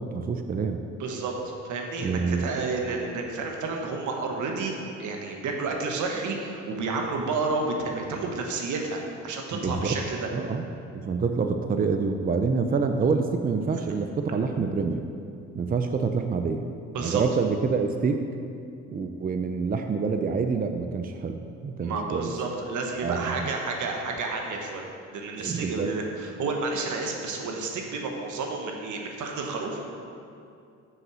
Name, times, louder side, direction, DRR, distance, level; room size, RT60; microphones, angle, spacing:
voice 1, 0.0-0.8 2.0-2.5 9.5-10.0 10.3-10.7 10.9-15.1 15.5-16.6 17.0-18.2 18.9-22.3 23.0-23.5 25.4-25.9, right 5 dB, 30° right, 6 dB, 0.5 m, -27 dB
voice 2, 1.0-1.3 1.6-4.7 5.0-10.3 14.5-14.7 16.9-17.2 21.8-24.8 25.1-29.8, right 3 dB, 75° right, 1 dB, 1.4 m, -30 dB
7.6 x 6.3 x 6.2 m, 2.5 s
cardioid pair, 90°, 30 cm